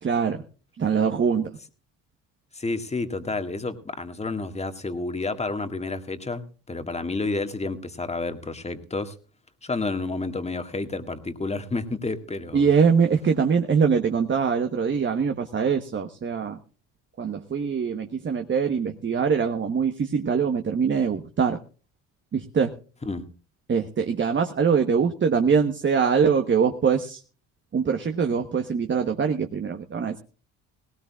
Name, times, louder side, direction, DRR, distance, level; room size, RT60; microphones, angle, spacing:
voice 1, 0.0-0.4 0.8-1.5 12.5-16.6 17.2-21.6 22.3-22.7 23.7-27.2 27.7-30.2, right 6 dB, 35° right, 6 dB, 1.2 m, -23 dB
voice 2, 2.5-9.1 9.6-12.7 23.1-23.3, left 3 dB, 20° left, 7 dB, 1.8 m, -30 dB
18.0 x 17.5 x 2.4 m, 0.37 s
supercardioid pair, 80°, 32 cm